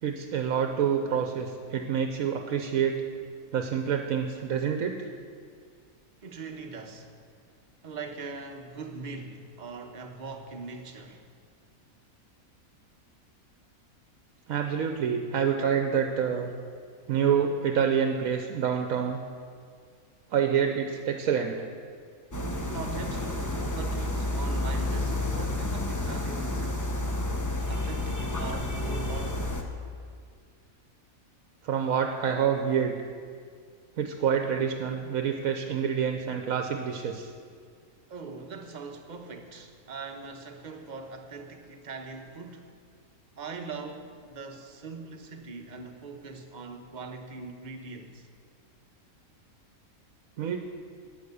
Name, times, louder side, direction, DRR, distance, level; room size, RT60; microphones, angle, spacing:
voice 1, 0.0-2.9 3.5-5.1 14.5-16.5 17.1-19.2 20.3-21.6 31.6-32.9 34.0-37.3 50.4-50.6, right 7 dB, 75° right, 5 dB, 1.2 m, -27 dB
voice 2, 6.2-7.1 7.8-11.3 22.6-26.9 27.7-29.5 38.1-42.7 43.4-48.3, right 4 dB, 35° right, 4 dB, 1.0 m, -41 dB
sound 1, 22.3-29.6, left 1 dB, 15° left, 0.8 m, -30 dB
11.5 x 8.8 x 6.9 m, 2.1 s
omnidirectional pair, 1.5 m